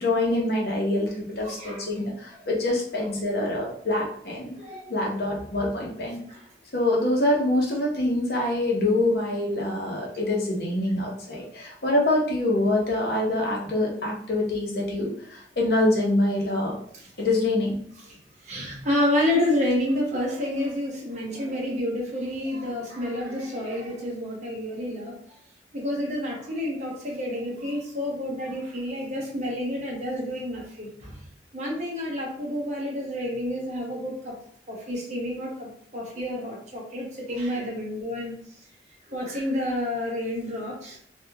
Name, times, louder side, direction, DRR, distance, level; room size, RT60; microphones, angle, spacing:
voice 1, 0.0-4.5 4.9-6.2 6.7-16.8 17.2-17.8, left 1 dB, 60° left, -2 dB, 0.8 m, -25 dB
voice 2, 1.4-1.8 4.6-4.9 6.3-6.4 17.0-17.1 18.0-18.2 18.4-25.2 25.7-31.1 31.5-34.3 34.7-38.3 39.1-41.0, left 1 dB, 40° right, -3 dB, 0.9 m, -29 dB
3.4 x 2.4 x 2.8 m, 0.62 s
head